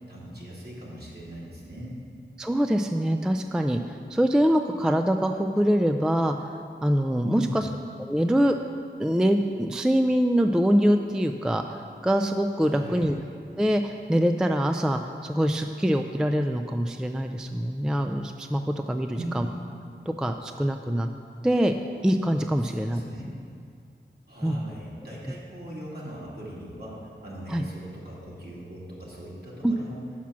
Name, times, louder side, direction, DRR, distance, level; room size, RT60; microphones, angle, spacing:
voice 1, 0.1-2.0 7.2-7.7 12.6-13.1 19.1-19.5 22.6-23.3 24.3-30.0, equal, 55° right, -6 dB, 2.0 m, -39 dB
voice 2, 2.4-3.8 4.1-6.4 6.8-7.5 8.0-8.6 9.0-13.2 13.6-19.5 20.1-21.1 21.4-21.7 22.0-23.0 24.4-24.6 27.5-27.6 29.6-29.7, equal, 5° right, 6 dB, 0.3 m, -24 dB
5.9 x 5.8 x 6.1 m, 2.3 s
cardioid pair, 45°, 20 cm